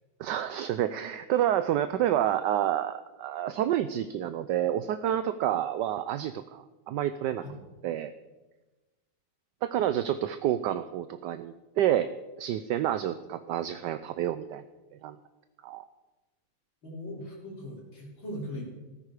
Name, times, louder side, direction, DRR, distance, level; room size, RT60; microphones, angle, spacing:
voice 1, 0.2-7.4 7.8-8.1 9.6-12.1 12.4-14.6 15.0-15.2 15.6-15.8, right 11 dB, 70° right, 11 dB, 1.1 m, -29 dB
voice 2, 16.8-18.6, left 1 dB, 75° left, -4 dB, 4.7 m, -39 dB
15.0 x 14.0 x 4.9 m, 1.1 s
omnidirectional pair, 2.1 m